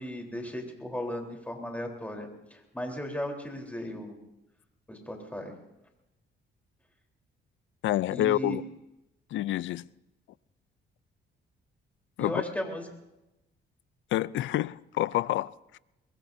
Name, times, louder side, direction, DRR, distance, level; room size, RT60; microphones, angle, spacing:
voice 1, 0.0-4.1 4.9-5.5 8.1-8.6 12.2-12.8, equal, 5° left, 3.8 m, -36 dB
voice 2, 7.8-8.6 9.3-9.8 12.2-12.4 14.1-15.8, left 14 dB, 75° left, 0.5 m, -28 dB
22.5 x 22.0 x 2.7 m
cardioid pair, 90°, 20 cm